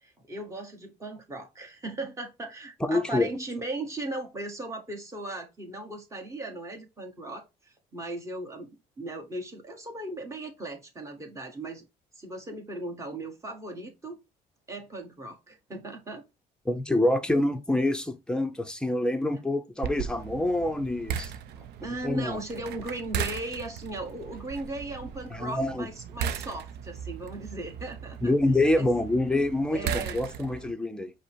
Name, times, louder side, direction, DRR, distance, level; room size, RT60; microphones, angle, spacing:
voice 1, 0.0-7.4 7.9-8.7 9.0-11.9 12.1-14.2 14.7-16.2 21.5-28.3 28.8-28.9 29.7-30.2, right 2 dB, 15° right, 1.5 m, -37 dB
voice 2, 2.8-3.3 16.7-21.3 21.8-22.4 25.3-25.9 28.2-31.1, left 1 dB, 5° left, 0.6 m, -26 dB
sound 1, 19.8-30.7, right 8 dB, 70° right, 0.6 m, -37 dB
5.2 x 2.1 x 4.5 m
cardioid pair, 110°, 17 cm